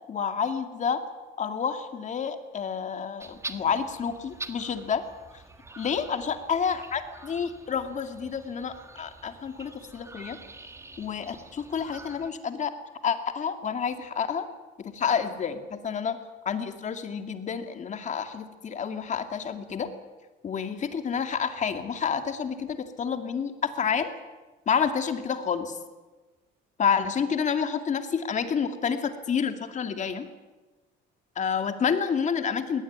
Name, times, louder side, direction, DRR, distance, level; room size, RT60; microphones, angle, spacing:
voice 1, 0.1-1.0 1.4-5.0 5.8-10.4 11.0-12.7 13.0-14.5 14.8-16.2 16.4-19.9 20.4-24.1 24.7-25.8 26.8-30.3 31.4-32.8, left 6 dB, 40° left, 8 dB, 2.4 m, -29 dB
sound 1, 3.2-12.3, right 3 dB, 15° right, 1.6 m, -45 dB
22.0 x 18.0 x 9.6 m, 1.2 s
cardioid pair, 125°, 20 cm